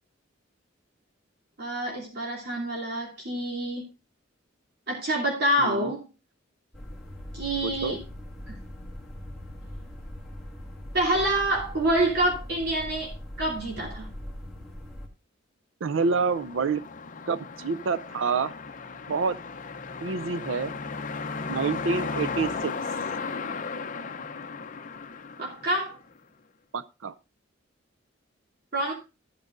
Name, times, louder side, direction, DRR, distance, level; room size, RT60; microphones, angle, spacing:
voice 1, 1.6-3.9 4.9-6.1 7.3-8.0 8.5-8.6 10.9-14.1 25.4-26.0 28.7-28.9, right 1 dB, 55° right, 3.0 m, -27 dB
voice 2, 5.6-5.9 7.6-8.0 15.8-16.8 17.3-18.5 19.1-19.4 20.0-20.8 21.5-22.7 26.7-27.1, right 5 dB, 85° right, 0.5 m, -27 dB
sound 1, 6.7-15.1, left 1 dB, ahead, 2.2 m, -41 dB
sound 2, 15.9-26.2, left 4 dB, 40° left, 0.7 m, -35 dB
14.5 x 8.8 x 2.6 m
head